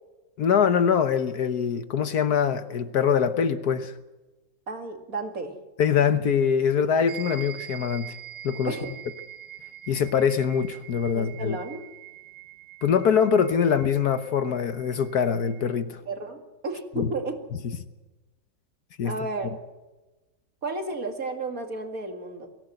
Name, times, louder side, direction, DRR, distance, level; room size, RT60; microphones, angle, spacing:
voice 1, 0.4-3.9 5.8-8.1 8.4-8.7 9.9-11.6 12.8-16.0 17.0-17.1 19.0-19.1, left 7 dB, 65° left, 11 dB, 1.4 m, -23 dB
voice 2, 4.7-5.6 8.7-8.9 11.1-11.9 16.1-17.4 19.0-19.5 20.6-22.5, right 2 dB, 50° right, 5 dB, 2.8 m, -32 dB
sound 1, 7.1-15.8, right 11 dB, 85° right, 1.8 m, -44 dB
23.5 x 16.0 x 7.9 m, 1.1 s
omnidirectional pair, 2.0 m